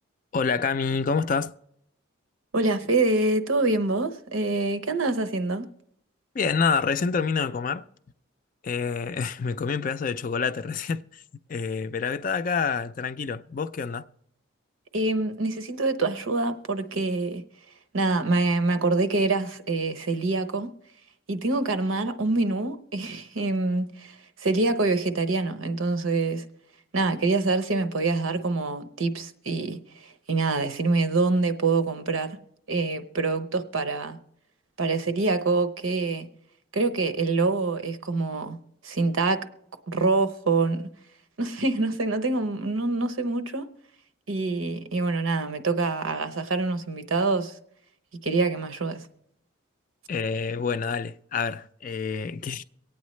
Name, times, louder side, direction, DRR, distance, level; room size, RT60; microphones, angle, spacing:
voice 1, 0.3-1.5 6.3-7.9 8.6-11.2 11.5-14.1 50.1-52.6, left 5 dB, 40° left, 0.4 m, -27 dB
voice 2, 2.5-5.7 14.9-17.4 17.9-20.7 21.3-26.4 26.9-32.4 32.7-34.2 34.8-36.3 36.7-38.6 38.8-39.4 39.9-40.9 41.4-43.7 44.3-47.5 48.2-49.0, right 3 dB, 85° right, 0.9 m, -25 dB
24.0 x 8.8 x 3.1 m
head